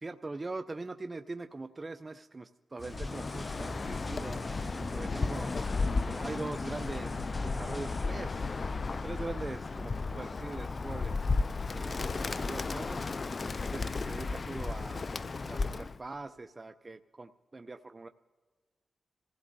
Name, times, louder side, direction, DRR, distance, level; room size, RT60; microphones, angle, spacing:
voice 1, 0.0-4.4 4.9-5.5 6.0-8.5 9.0-11.1 11.7-13.1 13.7-15.1 15.4-18.1, right 3 dB, 30° right, 8 dB, 0.5 m, -42 dB
sound 1, 2.8-9.6 9.9-10.1, equal, 25° left, 1.7 m, -46 dB
Bird, 2.9-16.0, left 3 dB, 45° left, 0.3 m, -34 dB
26.5 x 16.5 x 2.7 m, 1.4 s
cardioid pair, 80°, 0 cm